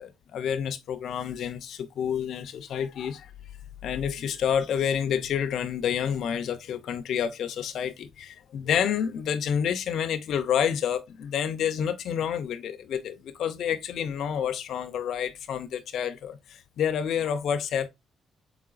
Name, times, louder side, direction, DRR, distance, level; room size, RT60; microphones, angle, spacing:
voice 1, 0.0-3.3 3.8-17.9, left 8 dB, 70° left, 0.6 m, -29 dB
4.8 x 3.6 x 2.4 m
cardioid pair, 90°, 0 cm